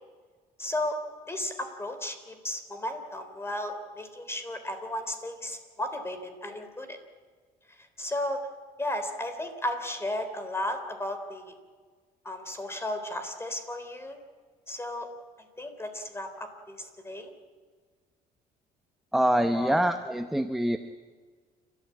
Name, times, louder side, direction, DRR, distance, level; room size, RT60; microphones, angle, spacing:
voice 1, 0.6-0.9 1.3-7.0 8.0-8.4 8.8-11.4 12.2-14.2 14.7-15.1 15.6-17.3 19.5-19.8, left 1 dB, 15° left, 8 dB, 3.6 m, -34 dB
voice 2, 19.1-20.8, right 1 dB, ahead, 7 dB, 0.9 m, -25 dB
29.0 x 13.5 x 8.6 m, 1.5 s
cardioid pair, 110°, 17 cm